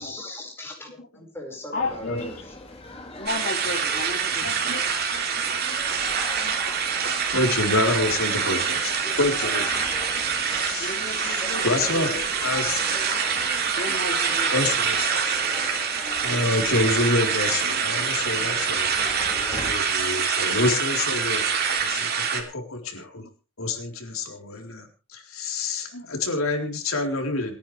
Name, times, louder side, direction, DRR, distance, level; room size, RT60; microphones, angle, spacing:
voice 1, 0.0-2.5, left 1 dB, 10° left, 1 dB, 5.3 m, -39 dB
voice 2, 1.7-2.3 3.2-4.6 10.8-12.6 13.8-14.5, left 3 dB, 45° left, 1 dB, 2.9 m, -33 dB
sound 1, 1.8-19.7, left 2 dB, 30° left, 3.1 m, -40 dB
sound 2, 3.3-22.4, right 6 dB, 50° right, 3.1 m, -25 dB
voice 3, 4.4-4.8 5.1-5.4 6.8-6.9 7.3-9.8 10.1-12.8 14.5-15.4 16.2-23.3 23.6-27.6, left 2 dB, 80° left, 3 dB, 4.0 m, -28 dB
28.5 x 10.0 x 3.4 m, 0.35 s
head